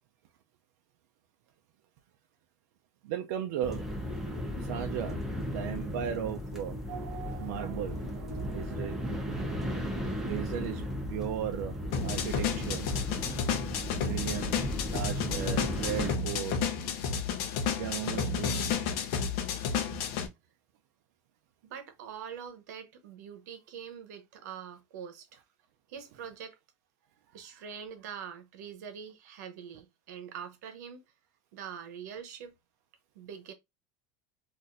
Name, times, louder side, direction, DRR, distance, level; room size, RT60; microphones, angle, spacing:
voice 1, 3.0-3.9 4.6-6.8 7.4-8.0 8.5-9.1 10.2-12.9 14.0-14.6 14.9-16.6 17.7-18.6, right 10 dB, 65° right, 0.4 m, -36 dB
sound 1, 3.6-16.1, equal, 5° right, 0.6 m, -36 dB
Race car auto racing / Accelerating revving vroom, 6.9-11.6, right 6 dB, 50° right, 0.8 m, -46 dB
sound 2, 11.9-20.3, left 6 dB, 50° left, 0.7 m, -31 dB
voice 2, 21.6-25.4 25.9-26.6 27.3-31.0 31.5-32.5 33.1-33.5, right 8 dB, 85° right, 0.8 m, -44 dB
4.0 x 2.5 x 2.5 m
supercardioid pair, 170°, 9 cm